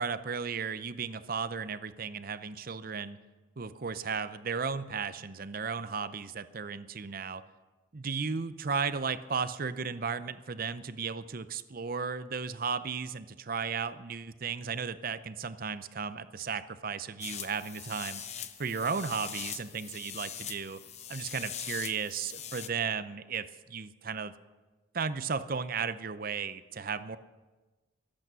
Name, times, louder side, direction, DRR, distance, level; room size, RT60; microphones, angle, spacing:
voice 1, 0.0-3.2 3.6-7.4 7.9-18.2 18.6-20.8 21.1-24.3 24.9-27.2, right 5 dB, 45° right, 13 dB, 0.6 m, -35 dB
sound 1, 17.2-22.7, left 8 dB, 30° left, 0.7 m, -42 dB
24.5 x 8.5 x 6.2 m, 1.2 s
head